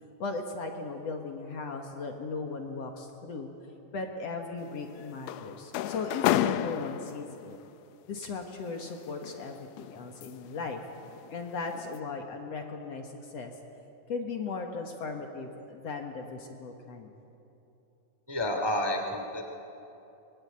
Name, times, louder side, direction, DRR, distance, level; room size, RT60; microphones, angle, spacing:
voice 1, 0.2-3.5 3.9-7.6 8.1-10.8 11.3-13.5 14.1-17.1, left 4 dB, 55° left, 3 dB, 2.4 m, -37 dB
sound 1, 4.6-7.5 8.7-10.6 11.0-11.3 11.7-12.0, left 12 dB, 75° left, 1.6 m, -32 dB
voice 2, 18.3-19.5, left 1 dB, 10° right, 3 dB, 1.7 m, -30 dB
24.0 x 20.5 x 9.9 m, 2.9 s
omnidirectional pair, 3.8 m